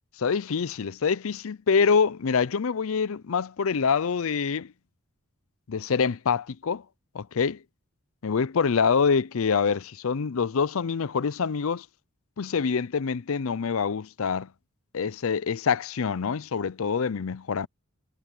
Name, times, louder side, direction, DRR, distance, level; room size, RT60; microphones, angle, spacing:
voice 1, 0.2-4.7 5.7-6.8 7.1-7.6 8.2-11.8 12.4-14.5 14.9-17.7, left 5 dB, 65° left, 0.5 m, -25 dB
head